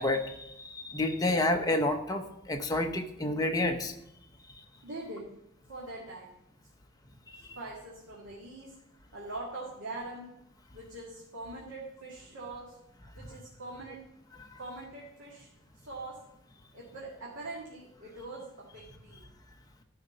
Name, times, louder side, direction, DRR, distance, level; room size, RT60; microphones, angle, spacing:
voice 1, 0.0-3.9 7.3-7.6, left 2 dB, 20° left, 4 dB, 0.8 m, -30 dB
voice 2, 4.8-5.3 5.7-6.4 7.5-8.7 9.1-10.3 10.7-12.8 13.1-14.0 14.6-15.5 15.8-16.2 16.7-19.3, right 2 dB, 80° right, -5 dB, 2.1 m, -43 dB
12.5 x 5.0 x 5.4 m, 0.81 s
head